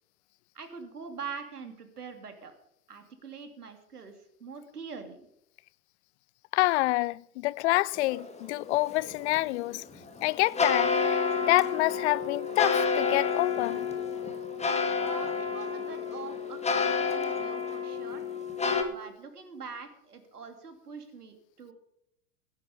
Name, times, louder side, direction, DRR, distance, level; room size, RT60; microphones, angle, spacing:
voice 1, 0.5-2.5 2.9-5.2 15.0-18.2 18.9-21.7, right 5 dB, 80° right, 2.7 m, -43 dB
voice 2, 6.5-9.8 10.2-13.8, left 19 dB, 50° left, 0.6 m, -27 dB
sound 1, 8.0-18.8, left 5 dB, 15° left, 2.3 m, -30 dB
16.0 x 11.0 x 5.1 m
figure-of-eight pair, 95°, 45 cm